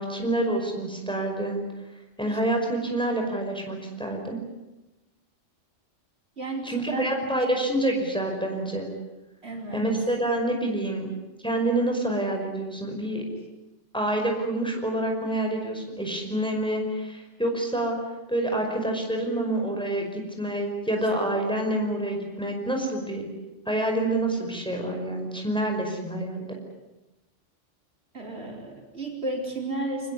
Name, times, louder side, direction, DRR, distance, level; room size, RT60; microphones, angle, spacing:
voice 1, 0.0-1.6 2.2-4.4 6.6-8.9 9.7-11.1 11.4-13.2 13.9-18.0 18.3-23.3 23.7-26.6, right 1 dB, 5° left, 2 dB, 5.3 m, -27 dB
voice 2, 6.4-7.5 9.4-9.9 28.1-30.1, right 2 dB, 60° right, 0 dB, 4.9 m, -33 dB
25.5 x 20.5 x 9.5 m, 1.0 s
omnidirectional pair, 1.2 m